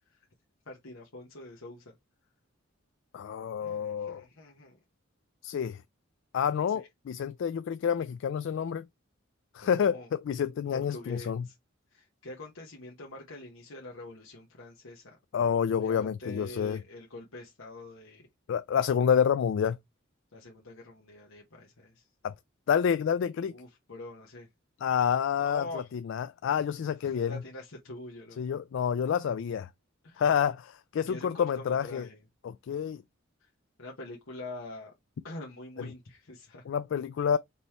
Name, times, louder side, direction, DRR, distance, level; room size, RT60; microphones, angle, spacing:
voice 1, 0.7-1.9 3.6-4.8 6.7-6.9 9.6-10.1 10.7-11.5 11.9-15.2 15.8-18.3 20.3-22.0 23.5-24.5 25.4-25.9 27.0-28.4 30.0-30.3 31.1-32.2 33.4-33.5 33.8-34.9 35.2-36.6, left 2 dB, 85° left, 1.2 m, -45 dB
voice 2, 3.1-4.2 5.4-5.8 6.3-8.9 9.5-11.5 15.3-16.8 18.5-19.8 22.2-22.3 22.7-23.5 24.8-27.4 28.4-29.7 30.2-32.1 32.4-33.0 35.8-35.9 36.7-37.4, left 7 dB, 65° left, 0.3 m, -28 dB
5.4 x 3.0 x 3.0 m
head